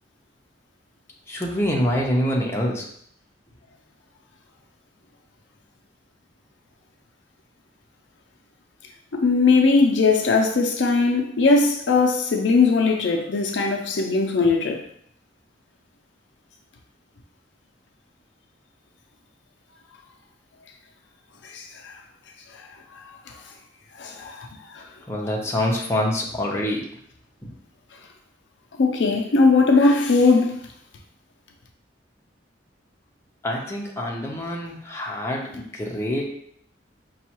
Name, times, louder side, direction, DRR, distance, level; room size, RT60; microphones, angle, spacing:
voice 1, 1.3-2.9 25.1-26.9 33.4-36.2, left 1 dB, 15° left, 0.6 m, -25 dB
voice 2, 9.1-14.8 21.5-21.9 24.0-24.5 24.7-24.8 28.8-30.6, left 4 dB, 75° left, 0.5 m, -19 dB
5.3 x 2.3 x 2.9 m
head